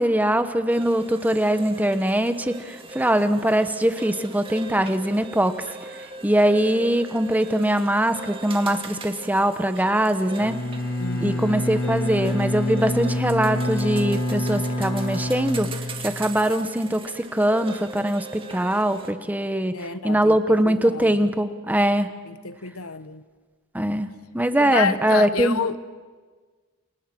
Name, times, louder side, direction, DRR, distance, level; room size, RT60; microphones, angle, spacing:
voice 1, 0.0-5.6 6.2-10.6 11.2-15.7 16.0-22.1 23.7-24.1 24.3-25.6, right 1 dB, 10° right, 1.2 m, -22 dB
sound 1, 0.7-19.1, right 4 dB, 25° right, 2.1 m, -41 dB
Bowed string instrument, 10.4-16.4, left 1 dB, 65° left, 1.5 m, -27 dB
voice 2, 11.0-11.6 19.7-21.3 22.2-23.2 24.6-25.8, left 5 dB, 90° left, 1.2 m, -29 dB
29.5 x 28.5 x 6.2 m
head